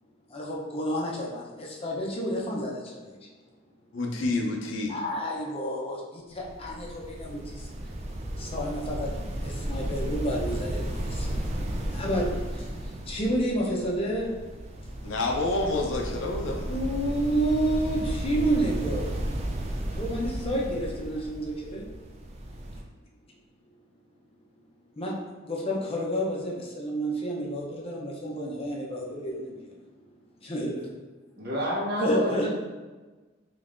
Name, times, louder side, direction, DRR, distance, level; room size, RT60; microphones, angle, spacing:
voice 1, 0.3-3.3 4.9-7.7 8.4-14.5 16.7-19.3 19.9-21.9 25.0-29.9 30.4-30.9 32.0-32.5, right 1 dB, 30° left, -3 dB, 0.6 m, -30 dB
voice 2, 3.9-4.9 15.0-16.8, left 2 dB, 75° left, 1 dB, 0.5 m, -28 dB
sound 1, 6.3-22.8, right 1 dB, 35° right, 0.4 m, -34 dB
voice 3, 31.4-32.5, equal, 55° right, -4 dB, 1.0 m, -28 dB
3.5 x 3.2 x 2.5 m, 1.2 s
head